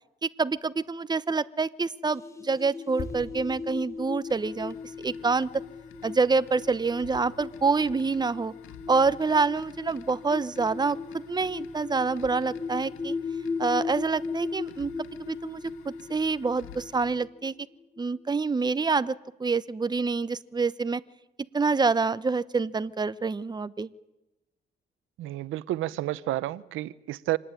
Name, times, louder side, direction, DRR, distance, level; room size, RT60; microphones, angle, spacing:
voice 1, 0.2-5.6 6.0-8.5 8.9-13.1 13.6-14.9 15.2-17.5 18.0-21.0 21.5-23.9, right 4 dB, 20° right, 15 dB, 1.0 m, -27 dB
sound 1, 2.1-18.4, left 5 dB, 15° left, 2.0 m, -38 dB
sound 2, 3.0-6.6 6.9-7.1, left 5 dB, 60° left, 5.7 m, -45 dB
sound 3, 4.3-17.1, left 7 dB, 85° left, 2.6 m, -51 dB
voice 2, 25.2-27.4, right 15 dB, 90° right, 17 dB, 0.8 m, -30 dB
26.0 x 19.5 x 9.1 m, 0.93 s
cardioid pair, 90°, 20 cm